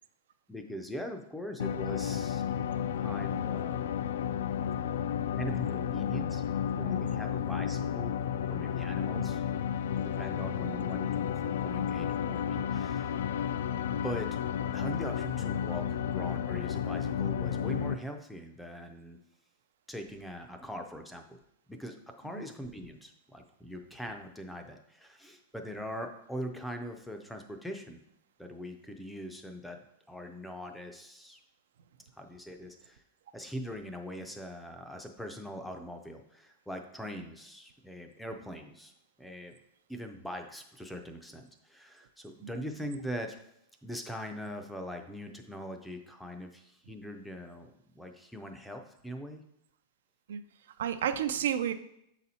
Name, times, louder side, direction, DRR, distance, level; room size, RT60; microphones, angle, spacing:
voice 1, 0.5-2.4 2.9-3.8 5.4-6.4 6.8-8.1 8.5-9.4 10.0-13.3 13.9-14.4 14.7-19.2 19.9-21.4 21.7-28.0 28.4-29.8 30.1-31.4 32.2-33.0 33.3-38.9 39.2-39.6 39.9-43.4 43.8-47.7 47.9-49.4, equal, ahead, 5 dB, 0.4 m, -41 dB
sound 1, 1.6-17.9, left 8 dB, 85° left, 0.3 m, -32 dB
voice 2, 50.8-51.7, right 9 dB, 80° right, 10 dB, 0.5 m, -31 dB
7.0 x 4.1 x 4.2 m, 0.77 s
supercardioid pair, 175°, 0 cm